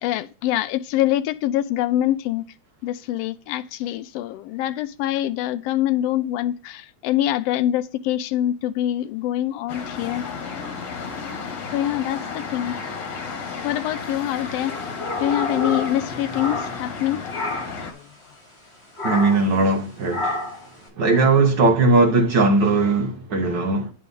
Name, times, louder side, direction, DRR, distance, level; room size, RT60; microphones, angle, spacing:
voice 1, 0.0-2.4 2.8-10.2 11.7-12.7 13.6-14.7 15.2-17.3, left 13 dB, 80° left, 1.5 m, -24 dB
sound 1, 9.7-17.9, left 5 dB, 60° left, 2.8 m, -33 dB
sound 2, 14.6-17.0 17.3-17.8 19.0-19.5 20.1-20.7, left 2 dB, 20° left, 5.5 m, -29 dB
voice 2, 19.0-20.4 21.0-23.9, right 3 dB, 60° right, 1.2 m, -19 dB
9.2 x 4.9 x 5.2 m
omnidirectional pair, 3.3 m